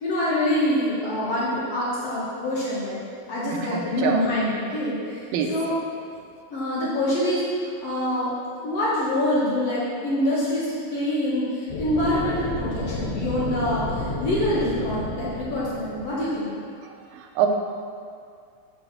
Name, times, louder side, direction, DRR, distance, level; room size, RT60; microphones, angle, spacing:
voice 1, 0.0-3.0 3.3-5.7 6.5-8.3 8.6-16.5, left 1 dB, 50° left, -8 dB, 2.1 m, -25 dB
voice 2, 3.7-4.2 5.3-5.5 16.8-17.5, right 7 dB, 80° right, 3 dB, 2.4 m, -25 dB
sound 1, 11.7-16.5, left 2 dB, 75° left, 2.3 m, -31 dB
7.9 x 5.0 x 6.1 m, 2.3 s
omnidirectional pair, 4.5 m